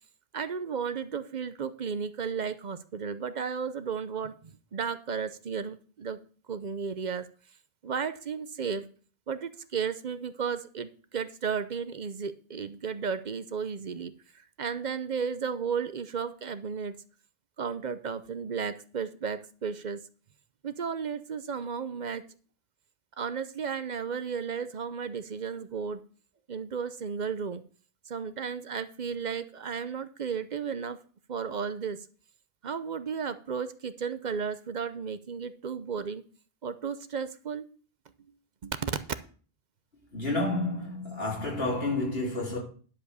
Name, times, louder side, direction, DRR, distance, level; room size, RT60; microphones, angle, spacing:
voice 1, 0.3-6.2 6.5-7.3 7.8-8.9 9.3-17.0 17.6-20.0 20.6-22.3 23.2-26.0 26.5-27.6 28.1-31.0 31.3-32.1 32.6-36.2 36.6-37.7 38.6-39.0, right 6 dB, 50° right, 0.8 m, -34 dB
voice 2, 40.1-42.6, left 2 dB, 75° left, 3.8 m, -30 dB
10.5 x 5.2 x 6.7 m
omnidirectional pair, 1.0 m